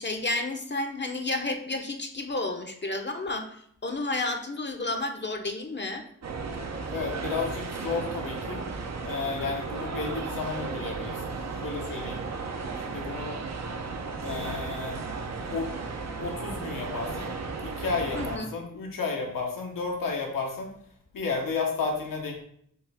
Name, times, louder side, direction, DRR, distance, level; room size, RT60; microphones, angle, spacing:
voice 1, 0.0-6.0 18.1-18.5, left 2 dB, 35° left, 5 dB, 0.7 m, -31 dB
sound 1, 6.2-18.4, right 4 dB, 55° right, 0.6 m, -35 dB
voice 2, 6.9-8.6 9.0-11.3 11.6-12.2 12.8-13.3 14.2-15.0 15.5-15.7 16.2-17.3 17.6-20.7 21.1-22.4, left 4 dB, 85° left, 0 dB, 1.0 m, -32 dB
6.3 x 2.3 x 3.4 m, 0.67 s
cardioid pair, 40°, 32 cm